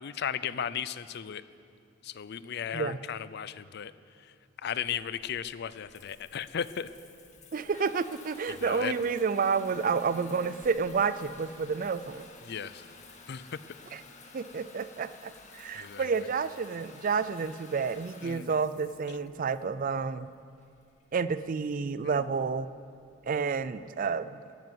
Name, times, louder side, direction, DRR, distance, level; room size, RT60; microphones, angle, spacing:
voice 1, 0.0-1.4 2.0-3.9 4.2-4.3 4.6-6.9 8.5-8.9 12.4-12.8 13.3-13.6 15.7-16.1 18.2-18.5 22.1-22.2, left 8 dB, 55° left, 16 dB, 0.4 m, -36 dB
Water tap faucet / Bathtub (filling or washing) / Trickle dribble, 4.8-23.7, left 3 dB, 35° left, 1.5 m, -52 dB
voice 2, 7.5-12.3 13.9-14.0 14.3-20.3 21.1-22.7 23.3-24.4, right 5 dB, 40° right, 15 dB, 0.4 m, -30 dB
14.0 x 9.3 x 9.5 m, 2.4 s
head